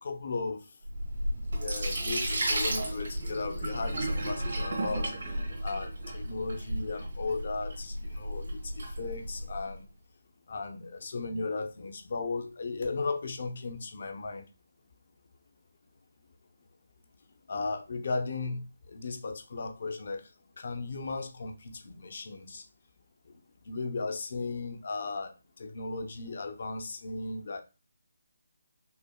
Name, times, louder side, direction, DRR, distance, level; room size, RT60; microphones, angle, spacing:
voice 1, 0.0-0.6 1.4-5.1 5.6-9.9 10.5-14.5 17.5-18.6 18.9-20.2 20.6-22.6 23.7-27.6, left 3 dB, 55° left, 0.6 m, -36 dB
Sink (filling or washing), 0.9-9.7, right 1 dB, 70° right, 1.8 m, -33 dB
5.6 x 2.0 x 2.2 m
figure-of-eight pair, 165°, 0 cm